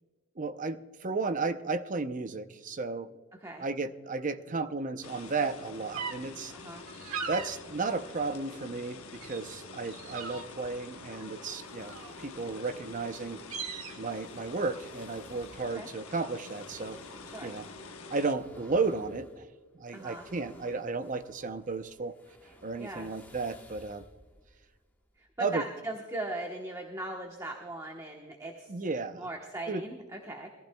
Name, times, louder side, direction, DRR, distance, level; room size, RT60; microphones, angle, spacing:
voice 1, 0.4-3.1 3.6-6.5 7.3-13.4 14.0-17.0 17.4-17.7 18.1-19.5 19.8-22.1 22.6-24.0 25.4-25.7 28.7-29.3 29.7-29.8, right 3 dB, 35° right, 10 dB, 0.6 m, -33 dB
voice 2, 3.3-3.7 6.5-6.9 15.7-15.9 17.2-17.5 19.9-20.3 22.8-23.1 25.2-28.7 29.1-30.5, right 2 dB, 15° right, 2 dB, 1.0 m, -39 dB
sound 1, 5.0-18.3, left 4 dB, 85° left, 1.0 m, -47 dB
sound 2, 5.9-6.2 6.9-7.5 8.1-8.9 9.2-9.4 9.8-10.7 11.1-12.3 12.8-12.9 13.2-14.0, right 5 dB, 85° right, 1.5 m, -39 dB
sound 3, 11.5-25.4, left 1 dB, 10° left, 1.2 m, -57 dB
21.5 x 15.0 x 2.2 m, 1.4 s
head